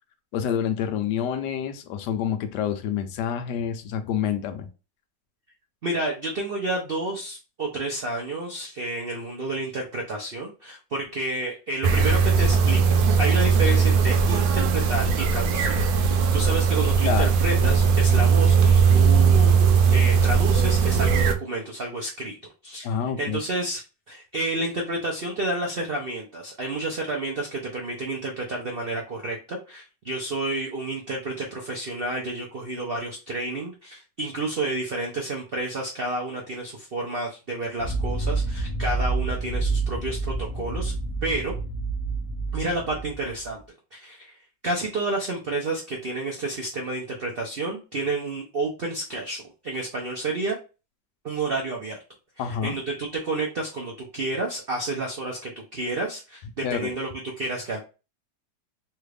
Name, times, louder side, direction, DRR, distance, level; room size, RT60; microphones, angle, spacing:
voice 1, 0.3-4.7 17.0-17.4 22.8-23.4 52.4-52.8 56.6-56.9, left 8 dB, 75° left, 1.1 m, -27 dB
voice 2, 5.8-19.6 19.9-22.4 22.6-23.8 24.1-40.9 41.2-41.5 42.5-43.6 43.9-44.4 44.6-50.6 51.2-52.0 52.4-57.1 57.4-57.8, right 2 dB, 70° right, 0.5 m, -30 dB
sound 1, 11.8-21.4, right 6 dB, 85° right, 1.3 m, -19 dB
sound 2, 37.8-43.5, right 3 dB, 20° right, 1.1 m, -28 dB
3.3 x 2.4 x 3.3 m
omnidirectional pair, 2.0 m